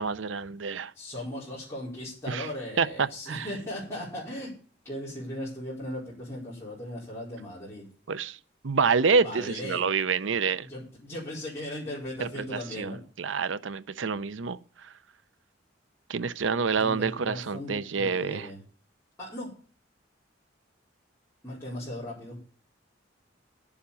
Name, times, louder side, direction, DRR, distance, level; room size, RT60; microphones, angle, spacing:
voice 1, 0.0-0.9 2.3-2.5 2.8-3.5 8.1-8.4 8.6-10.7 12.2-14.9 16.1-18.5, right 5 dB, 85° right, 0.6 m, -28 dB
voice 2, 0.9-4.5 4.8-7.9 9.2-9.8 10.6-13.0 13.2-13.3 16.8-18.6 19.2-19.5 21.4-22.4, left 1 dB, 15° left, 4.8 m, -37 dB
11.5 x 7.2 x 6.8 m
head